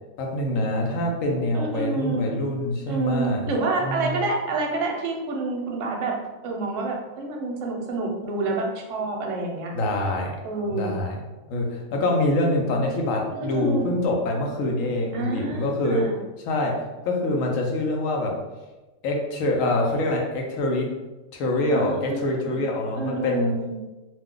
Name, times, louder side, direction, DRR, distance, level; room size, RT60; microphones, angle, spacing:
voice 1, 0.2-3.5 3.8-4.2 9.7-10.4 10.7-11.2 11.5-16.1 16.5-18.4 19.0-20.9 21.3-23.6, left 1 dB, 70° left, 0 dB, 0.9 m, -25 dB
voice 2, 1.5-2.2 2.9-6.2 6.4-9.7 10.4-11.0 13.3-13.9 15.1-16.2 21.7-22.6 22.9-23.8, right 2 dB, 65° right, 0 dB, 0.9 m, -28 dB
2.6 x 2.2 x 3.6 m, 1.1 s
omnidirectional pair, 1.5 m